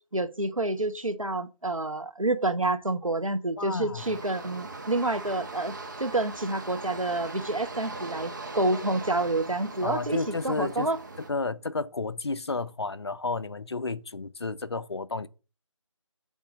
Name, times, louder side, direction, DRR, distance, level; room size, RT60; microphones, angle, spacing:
voice 1, 0.1-11.0, right 2 dB, 85° right, 0.9 m, -28 dB
voice 2, 3.6-4.2 9.8-10.9 11.3-15.3, left 3 dB, 55° left, 0.5 m, -32 dB
sound 1, 4.0-11.3, right 3 dB, 35° right, 1.0 m, -40 dB
8.2 x 3.8 x 6.3 m
figure-of-eight pair, 160°, 17 cm